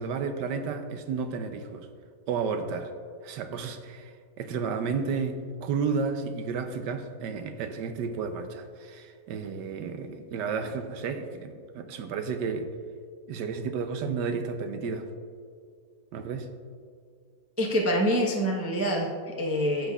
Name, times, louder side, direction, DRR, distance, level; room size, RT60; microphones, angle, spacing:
voice 1, 0.0-1.9 2.3-2.9 3.2-12.7 13.3-15.1 16.1-16.5, right 5 dB, 75° right, 8 dB, 1.3 m, -32 dB
voice 2, 17.6-19.9, equal, 20° right, -2 dB, 0.4 m, -26 dB
12.0 x 7.8 x 2.4 m, 2.1 s
omnidirectional pair, 2.0 m